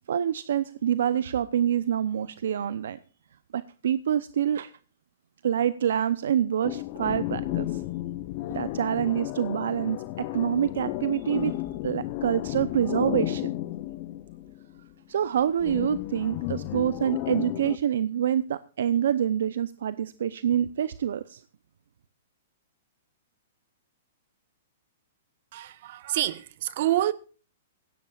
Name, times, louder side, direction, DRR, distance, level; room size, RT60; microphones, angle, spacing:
voice 1, 0.1-3.0 3.5-4.7 5.4-7.8 8.5-11.5 11.8-13.5 15.1-21.4, right 9 dB, 75° right, 0.7 m, -26 dB
sound 1, 6.6-14.8 15.6-17.8, left 16 dB, 45° left, 0.8 m, -33 dB
voice 2, 25.5-27.1, right 14 dB, 55° right, 1.2 m, -27 dB
17.0 x 16.5 x 2.4 m
hypercardioid pair, 135°, 0 cm